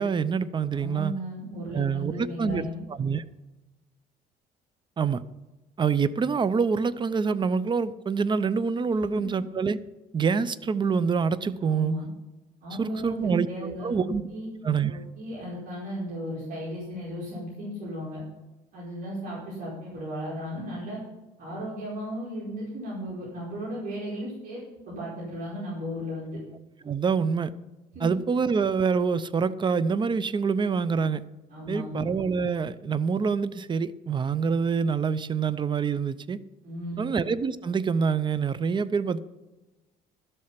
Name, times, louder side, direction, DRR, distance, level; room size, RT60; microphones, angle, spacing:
voice 1, 0.0-1.2 1.7-3.2 5.0-5.2 5.8-9.8 10.1-12.0 12.8-14.2 14.6-14.9 26.8-27.5 28.0-31.2 31.7-36.4 37.0-39.2, right 5 dB, 30° right, 16 dB, 0.6 m, -26 dB
voice 2, 0.7-2.8 9.2-9.3 11.6-12.1 12.6-14.5 14.9-18.2 18.7-21.0 21.4-26.4 27.9-28.0 31.5-31.9 36.6-37.0, equal, 55° right, -7 dB, 5.0 m, -35 dB
12.5 x 7.6 x 5.9 m, 1.1 s
cardioid pair, 110°, 17 cm